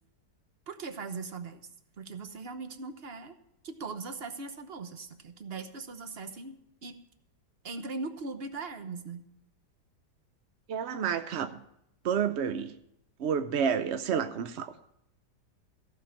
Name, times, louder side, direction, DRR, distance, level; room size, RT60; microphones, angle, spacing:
voice 1, 0.7-1.6 2.0-3.3 3.6-7.0 7.6-9.2, right 4 dB, 40° right, 8 dB, 1.0 m, -40 dB
voice 2, 10.7-11.6 12.0-12.7 13.2-14.9, right 7 dB, 75° right, 10 dB, 0.6 m, -30 dB
14.5 x 5.9 x 8.7 m, 0.77 s
omnidirectional pair, 1.8 m